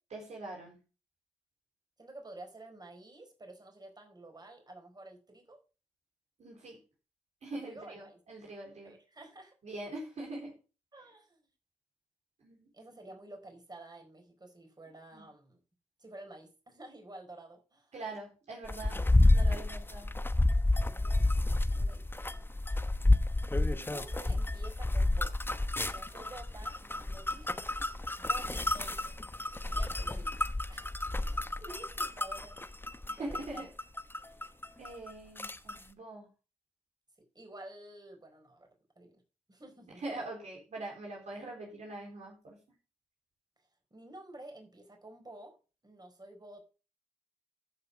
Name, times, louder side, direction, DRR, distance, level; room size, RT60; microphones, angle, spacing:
voice 1, 0.1-0.8 6.4-6.8 7.4-8.9 9.6-10.5 12.4-12.7 15.1-15.2 17.9-19.0 19.3-20.1 33.1-33.7 34.8-36.3 40.0-42.6, right 2 dB, 65° right, -1 dB, 4.0 m, -43 dB
voice 2, 2.0-5.6 7.6-8.2 8.8-9.5 10.9-11.5 12.7-15.6 16.0-17.9 20.7-22.4 23.6-25.3 25.8-27.6 28.2-29.2 29.6-30.9 31.2-32.6 33.2-33.7 37.2-38.7 39.0-39.2 39.5-40.0 43.9-45.6 45.8-46.6, right 2 dB, 35° right, 4 dB, 4.5 m, -51 dB
sound 1, 18.7-35.1 35.4-35.8, left 2 dB, 15° left, 1.0 m, -30 dB
14.0 x 5.7 x 5.1 m, 0.34 s
supercardioid pair, 40°, 13 cm